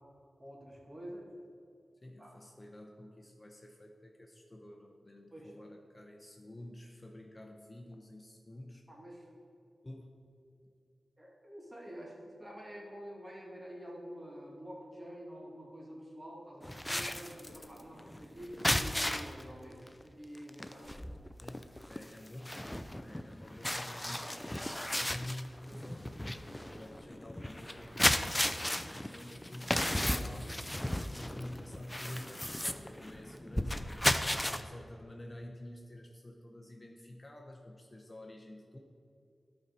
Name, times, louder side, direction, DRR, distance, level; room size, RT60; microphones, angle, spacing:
voice 1, 0.4-1.3 2.2-2.3 5.3-5.6 8.9-9.3 11.2-20.9, equal, 25° right, -3 dB, 2.3 m, -48 dB
voice 2, 2.0-8.9 9.8-10.2 21.4-30.6 30.9-34.2 34.5-38.8, left 1 dB, 30° left, 1 dB, 0.8 m, -49 dB
sound 1, 16.6-19.4 19.9-20.0 20.3-34.6, left 1 dB, 10° left, 0.5 m, -35 dB
11.5 x 4.4 x 5.4 m, 2.5 s
cardioid pair, 60°, 0 cm